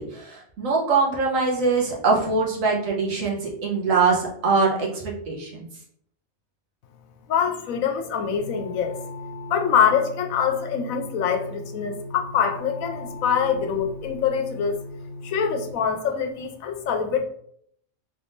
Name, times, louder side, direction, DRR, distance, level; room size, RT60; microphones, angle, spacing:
voice 1, 0.0-5.7, right 4 dB, 75° right, -2 dB, 1.4 m, -23 dB
voice 2, 7.3-9.0 9.5-14.8 15.2-17.2, left 7 dB, 85° left, 4 dB, 1.1 m, -24 dB
sound 1, 8.4-15.7, left 1 dB, 5° right, 1.5 m, -38 dB
3.7 x 3.5 x 2.6 m, 0.68 s
omnidirectional pair, 1.4 m